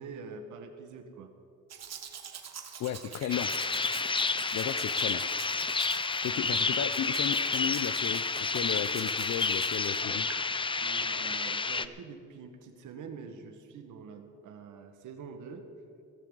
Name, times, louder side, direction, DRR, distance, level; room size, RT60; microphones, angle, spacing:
voice 1, 0.0-1.3 6.5-6.7 8.9-9.0 10.8-15.7, right 5 dB, 80° right, 6 dB, 1.8 m, -45 dB
Domestic sounds home sounds, 1.7-10.4 11.0-11.1, right 8 dB, 60° right, 1.6 m, -46 dB
voice 2, 2.8-3.5 4.5-5.2 6.2-8.2 8.5-10.3, left 10 dB, 65° left, 15 dB, 0.7 m, -34 dB
sound 1, 3.3-11.9, left 4 dB, 15° left, 0.6 m, -30 dB
17.0 x 16.5 x 4.1 m, 2.7 s
cardioid pair, 90°, 30 cm